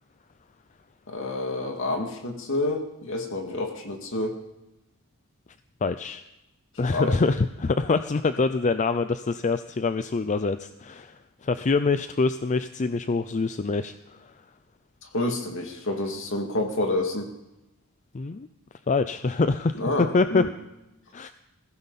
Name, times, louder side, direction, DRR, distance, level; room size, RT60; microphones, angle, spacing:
voice 1, 1.1-4.4 6.9-7.2 15.0-17.3 19.8-20.5, left 2 dB, 60° left, 3 dB, 2.4 m, -28 dB
voice 2, 5.8-6.2 6.8-14.3 18.1-18.5 18.9-20.4 21.1-21.3, left 3 dB, 35° left, 11 dB, 0.5 m, -25 dB
21.0 x 16.0 x 4.2 m, 0.95 s
head